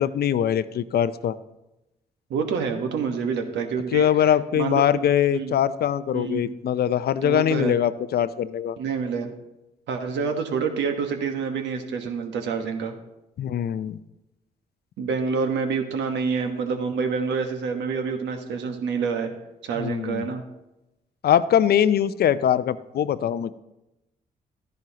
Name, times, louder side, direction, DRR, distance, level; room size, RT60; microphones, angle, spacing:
voice 1, 0.0-1.4 3.9-8.8 13.4-14.0 19.8-20.3 21.2-23.5, left 10 dB, 60° left, 15 dB, 0.5 m, -22 dB
voice 2, 2.3-4.1 4.5-5.0 5.3-5.5 6.1-6.5 7.2-7.8 8.8-9.3 9.9-12.9 15.0-19.3 19.6-20.4, right 5 dB, 80° right, 5 dB, 1.3 m, -27 dB
13.0 x 10.5 x 2.9 m, 0.95 s
supercardioid pair, 55°, 18 cm